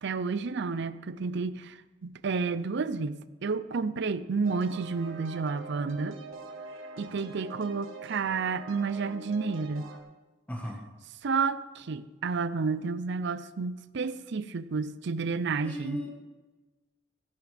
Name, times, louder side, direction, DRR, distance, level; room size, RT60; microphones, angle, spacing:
voice 1, 0.0-6.2 7.0-9.9 11.2-16.0, right 4 dB, 65° right, 14 dB, 0.6 m, -31 dB
sound 1, 4.4-10.0, right 3 dB, 90° right, 1.3 m, -44 dB
voice 2, 10.5-10.8 15.6-16.1, equal, 10° left, 0 dB, 1.4 m, -36 dB
16.0 x 11.5 x 3.5 m, 1.2 s
head